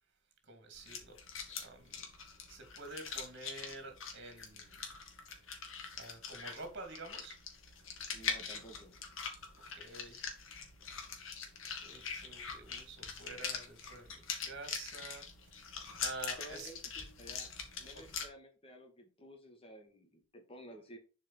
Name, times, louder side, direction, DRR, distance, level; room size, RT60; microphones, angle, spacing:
voice 1, 0.4-1.2 1.6-2.0 2.5-4.8 6.0-7.4 9.7-10.2 11.6-15.2 16.0-16.7, right 2 dB, 55° right, 5 dB, 2.7 m, -48 dB
sound 1, 0.7-18.3, left 6 dB, 70° left, 2.1 m, -43 dB
voice 2, 8.1-8.9 16.4-17.5 17.8-21.0, equal, 25° left, 3 dB, 2.0 m, -53 dB
7.2 x 4.9 x 4.6 m, 0.33 s
head